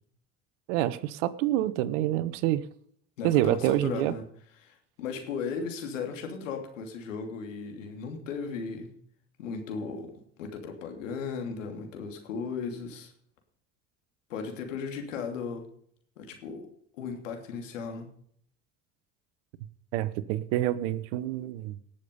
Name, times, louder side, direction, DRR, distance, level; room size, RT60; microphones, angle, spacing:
voice 1, 0.7-2.6 3.2-4.1 19.9-21.8, right 14 dB, 75° right, 16 dB, 1.1 m, -27 dB
voice 2, 3.2-4.2 4.6-8.9 9.4-10.1 10.4-13.1 14.3-15.7 16.2-16.7 16.9-18.1, left 5 dB, 85° left, 4 dB, 2.9 m, -36 dB
19.0 x 7.1 x 5.4 m, 0.63 s
hypercardioid pair, 70°, 37 cm